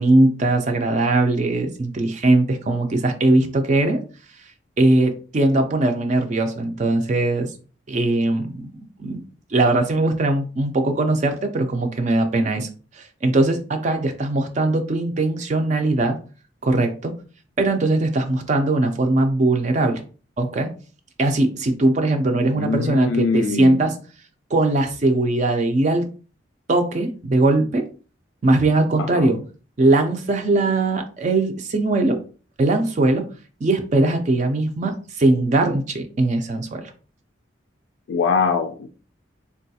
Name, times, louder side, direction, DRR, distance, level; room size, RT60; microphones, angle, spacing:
voice 1, 0.0-4.0 4.8-7.5 7.9-8.7 9.0-9.2 9.5-12.7 12.9-16.2 16.6-17.1 17.6-20.0 20.4-20.7 21.2-24.0 24.5-26.1 26.7-27.8 28.4-29.4 29.8-32.2 32.6-33.3 33.6-36.9, right 2 dB, 40° right, 5 dB, 0.4 m, -20 dB
voice 2, 22.5-23.8 29.0-29.4 38.1-38.9, left 5 dB, 80° left, 5 dB, 0.3 m, -23 dB
3.8 x 2.3 x 2.7 m, 0.37 s
head